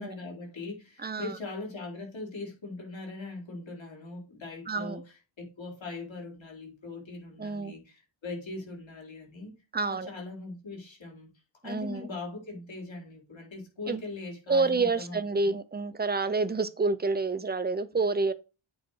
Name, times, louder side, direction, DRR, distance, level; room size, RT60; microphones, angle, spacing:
voice 1, 0.0-9.5 9.9-11.3 11.6-15.6, left 3 dB, 65° left, 3.9 m, -41 dB
voice 2, 1.0-1.3 4.7-5.0 7.4-7.7 9.7-10.1 11.6-12.1 13.9-14.0 14.5-18.3, right 3 dB, 20° right, 0.6 m, -28 dB
8.4 x 4.1 x 4.6 m
wide cardioid pair, 130°, 49 cm